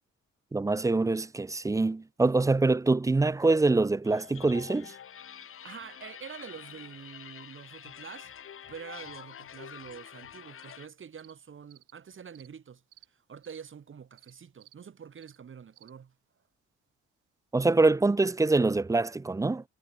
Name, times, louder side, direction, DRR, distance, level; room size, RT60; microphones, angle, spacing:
voice 1, 0.5-4.9 17.5-19.6, right 3 dB, 10° right, 0.4 m, -25 dB
sound 1, 4.0-10.9, left 9 dB, 45° left, 1.0 m, -47 dB
voice 2, 5.6-8.3 8.7-12.8 13.1-16.1, right 7 dB, 40° right, 1.9 m, -46 dB
sound 2, 10.6-10.7 11.2-11.3 11.7-11.9 12.3-12.5 12.9-13.1 13.4-13.6 14.2-14.3 14.6-14.8 15.2-15.4 15.7-15.9, right 14 dB, 85° right, 3.3 m, -57 dB
cardioid pair, 90°, 30 cm